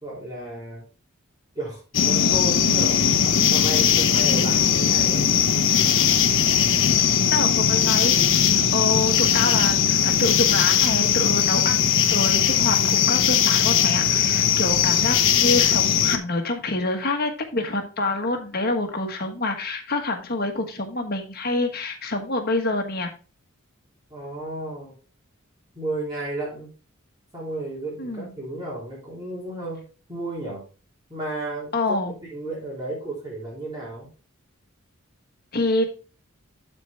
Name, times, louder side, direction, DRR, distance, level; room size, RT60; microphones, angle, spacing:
voice 1, 0.0-0.9 1.5-3.0 3.5-5.3 24.1-24.9 25.7-26.7 27.3-29.8 30.1-30.6 31.1-34.1, right 1 dB, 20° right, -6 dB, 3.2 m, -33 dB
sound 1, 1.9-16.2, left 8 dB, 60° left, 0.8 m, -19 dB
voice 2, 4.2-4.5 7.3-23.1 28.0-28.3 31.7-32.1 35.5-35.9, left 2 dB, 45° left, 4 dB, 1.5 m, -27 dB
12.0 x 4.6 x 3.4 m, 0.35 s
head